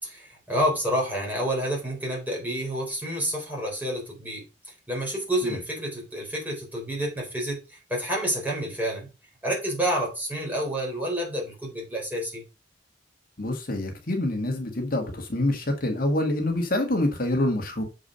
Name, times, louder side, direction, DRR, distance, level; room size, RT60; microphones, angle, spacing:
voice 1, 0.0-9.1 9.4-12.4, equal, 10° right, 4.0 m, -29 dB
voice 2, 13.4-17.8, left 1 dB, 50° left, 1.8 m, -26 dB
7.1 x 4.7 x 5.5 m
head